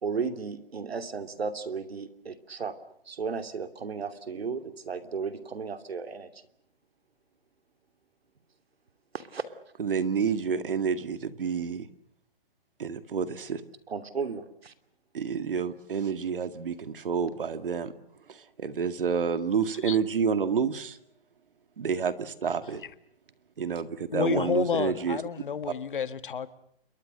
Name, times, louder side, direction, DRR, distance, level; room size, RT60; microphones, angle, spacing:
voice 1, 0.0-2.7 3.1-6.4 9.1-9.4 13.9-14.7, right 5 dB, 90° right, 2.9 m, -34 dB
voice 2, 9.8-11.9 12.8-13.6 15.1-17.9 18.3-21.0 21.8-22.8 23.6-25.2 25.7-25.8, right 6 dB, 65° right, 2.1 m, -29 dB
voice 3, 24.1-26.5, left 7 dB, 60° left, 1.6 m, -30 dB
29.0 x 23.0 x 6.7 m
hypercardioid pair, 175°, 30 cm